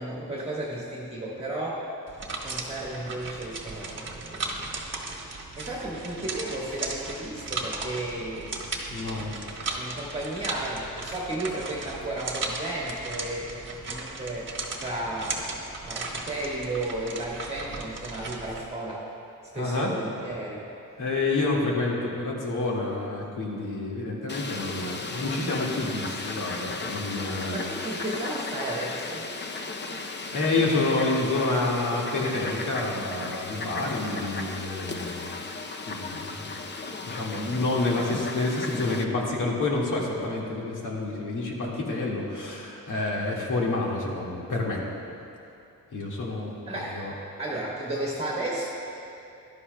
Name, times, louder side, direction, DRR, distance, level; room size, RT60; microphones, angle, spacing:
voice 1, 0.0-1.9 2.4-4.7 5.6-8.7 9.7-13.6 13.9-19.1 19.5-20.7 26.7-27.1 27.5-29.3 46.7-47.1 47.4-48.7, right 1 dB, 20° right, -4 dB, 1.5 m, -34 dB
sound 1, 2.1-18.6, right 3 dB, 35° right, 1.3 m, -36 dB
voice 2, 8.9-9.3 19.5-19.9 21.0-27.6 30.3-35.5 35.9-36.6 37.1-44.8 45.9-46.5 46.9-47.1, left 2 dB, 65° left, -3 dB, 2.0 m, -28 dB
Fowl, 24.3-39.0, left 3 dB, 30° left, 0.6 m, -35 dB
14.5 x 11.5 x 2.2 m, 2.7 s
cardioid pair, 100°, 34 cm